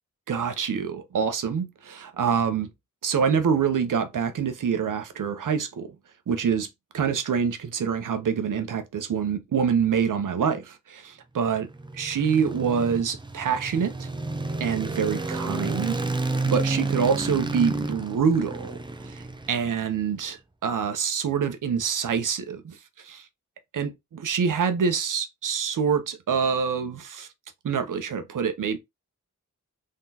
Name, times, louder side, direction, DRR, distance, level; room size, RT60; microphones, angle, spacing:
voice 1, 0.3-2.7 3.0-6.0 6.3-6.7 6.9-11.7 11.9-14.1 14.6-16.0 16.4-23.2 23.7-27.3 27.6-28.8, right 6 dB, 90° right, 0.7 m, -26 dB
sound 1, 11.5-20.0, right 2 dB, 15° right, 0.5 m, -31 dB
3.7 x 3.7 x 2.7 m
wide cardioid pair, 80°, 31 cm